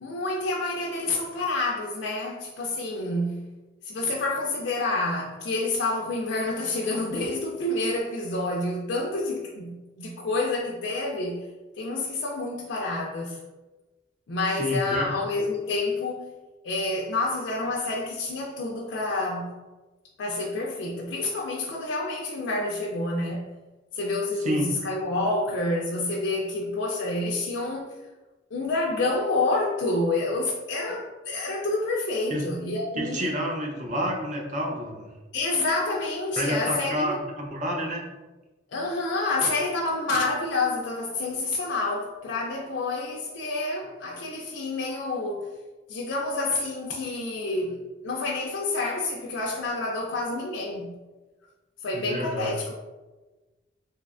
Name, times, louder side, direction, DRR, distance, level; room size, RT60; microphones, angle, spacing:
voice 1, 0.0-3.5 3.8-11.5 11.8-13.4 14.3-16.3 16.6-19.5 20.2-23.5 23.9-27.9 28.5-33.4 35.3-37.1 38.7-45.6 45.9-50.9 51.8-52.7, left 2 dB, 75° left, -3 dB, 0.4 m, -28 dB
voice 2, 14.6-15.1 24.4-24.7 32.3-32.5 33.0-35.1 36.4-38.1 51.9-52.6, equal, 40° right, 0 dB, 0.5 m, -29 dB
3.1 x 2.7 x 2.4 m, 1.2 s
head